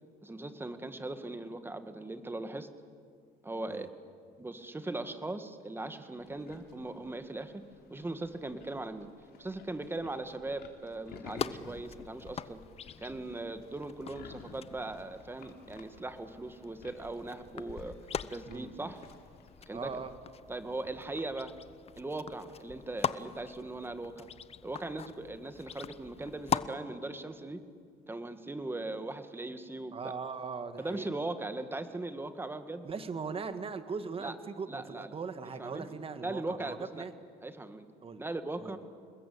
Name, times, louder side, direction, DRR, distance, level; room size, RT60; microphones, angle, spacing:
voice 1, 0.2-2.7 3.4-3.9 4.4-7.5 7.9-9.1 9.4-12.6 13.0-18.0 18.3-19.0 19.7-19.9 20.5-21.6 22.0-24.3 24.6-27.6 28.1-30.1 30.8-32.9 34.2-34.3 34.7-35.2 35.6-35.9 36.2-37.1 37.4-37.9 38.2-38.8, right 2 dB, 15° right, 9 dB, 1.9 m, -39 dB
sound 1, 6.2-20.2, left 5 dB, 70° left, 3.4 m, -55 dB
sound 2, 11.4-26.7, left 7 dB, 35° left, 0.8 m, -42 dB
voice 2, 18.5-19.0 19.7-20.1 29.9-31.1 32.8-37.1 38.0-38.3 38.6-38.8, right 5 dB, 35° right, 10 dB, 1.9 m, -40 dB
28.0 x 20.5 x 8.7 m, 2.1 s
cardioid pair, 110°, 17 cm